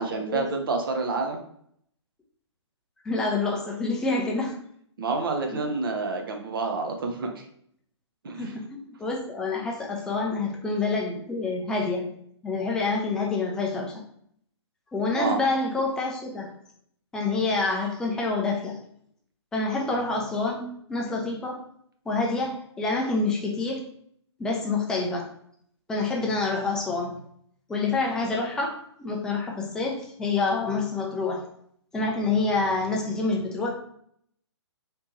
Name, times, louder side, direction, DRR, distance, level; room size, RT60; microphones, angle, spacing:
voice 1, 0.0-1.4 5.0-7.4 8.2-8.5 15.1-15.4, right 3 dB, 50° right, 3 dB, 0.7 m, -28 dB
voice 2, 3.0-4.6 5.5-5.6 8.4-12.0 12.4-14.0 14.9-16.5 17.1-18.8 19.5-21.6 22.1-23.8 24.4-25.3 25.9-27.1 27.7-31.5 31.9-33.7, left 3 dB, 5° left, -1 dB, 0.4 m, -27 dB
3.3 x 2.9 x 3.0 m, 0.66 s
figure-of-eight pair, 130°, 15 cm